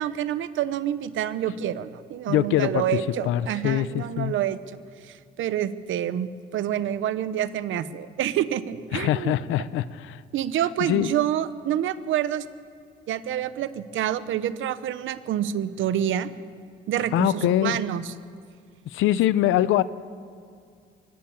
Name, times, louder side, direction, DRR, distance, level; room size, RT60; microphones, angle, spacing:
voice 1, 0.0-4.6 5.1-9.3 10.3-12.4 13.1-16.3 16.9-18.1, right 10 dB, 80° right, 14 dB, 1.0 m, -27 dB
voice 2, 2.3-3.0 3.2-4.3 8.9-10.2 10.8-11.1 17.1-17.8 18.9-19.8, left 13 dB, 90° left, 16 dB, 0.7 m, -23 dB
23.5 x 19.0 x 7.3 m, 2.2 s
cardioid pair, 90°, 20 cm